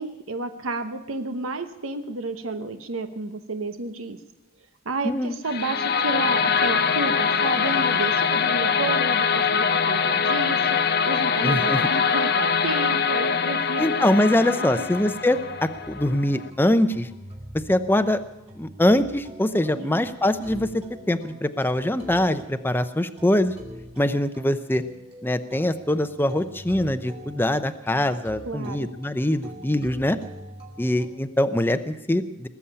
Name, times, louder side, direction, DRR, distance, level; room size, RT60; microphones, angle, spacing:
voice 1, 0.0-4.2 4.8-13.9 14.5-14.9 19.8-19.9 28.4-28.9, right 3 dB, 80° right, 8 dB, 1.0 m, -31 dB
voice 2, 5.0-5.4 11.4-11.8 13.8-17.1 17.7-18.2 18.6-23.5 24.0-24.8 25.2-30.2 30.8-32.5, left 1 dB, 10° left, 10 dB, 0.6 m, -23 dB
sound 1, 5.5-16.5, left 6 dB, 50° left, 0.8 m, -23 dB
sound 2, 14.7-31.1, right 1 dB, 30° right, 2.6 m, -45 dB
19.5 x 7.3 x 9.9 m, 0.96 s
head